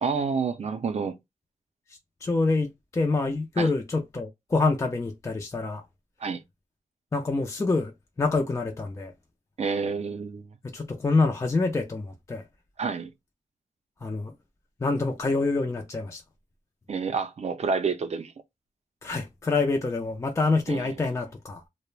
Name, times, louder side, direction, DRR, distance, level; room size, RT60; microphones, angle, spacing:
voice 1, 0.0-1.2 3.6-3.7 6.2-6.4 9.6-10.5 12.8-13.1 16.9-18.3 20.7-21.1, right 5 dB, 50° right, 0.5 m, -29 dB
voice 2, 2.2-5.8 7.1-7.9 8.2-9.1 10.6-12.4 14.0-14.3 14.8-16.2 19.0-21.6, left 3 dB, 20° left, 0.4 m, -26 dB
2.3 x 2.0 x 3.1 m
wide cardioid pair, 100°, 14 cm